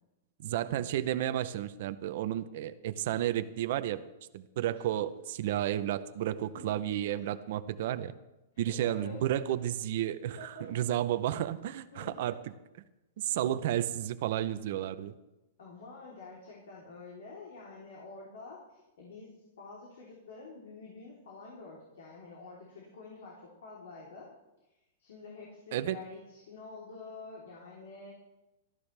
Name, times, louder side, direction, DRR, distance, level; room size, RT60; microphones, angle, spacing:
voice 1, 0.4-4.0 4.3-8.1 8.6-12.3 13.2-15.1 25.7-26.0, right 12 dB, 40° right, 12 dB, 0.7 m, -32 dB
voice 2, 6.5-7.3 8.5-9.2 10.4-10.8 11.9-12.3 15.6-19.3 19.6-24.3 25.0-28.1, left 3 dB, 70° left, -3 dB, 3.5 m, -48 dB
18.5 x 14.0 x 3.4 m, 0.99 s
supercardioid pair, 180°, 0 cm